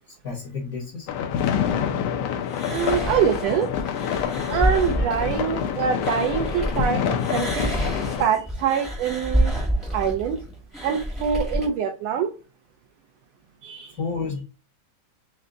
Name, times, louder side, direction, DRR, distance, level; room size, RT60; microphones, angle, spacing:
voice 1, 0.2-1.1 14.0-14.4, left 4 dB, 50° left, -2 dB, 1.0 m, -30 dB
sound 1, 1.1-8.2, left 8 dB, 75° left, 1.4 m, -27 dB
sound 2, 2.5-6.9 7.2-11.7, right 1 dB, ahead, 0.6 m, -28 dB
voice 2, 2.7-3.7 4.4-7.7 8.2-9.5 9.9-10.4 10.8-12.3 13.6-14.0, right 7 dB, 80° right, 4 dB, 1.5 m, -24 dB
5.3 x 2.2 x 3.8 m, 0.32 s
omnidirectional pair, 3.4 m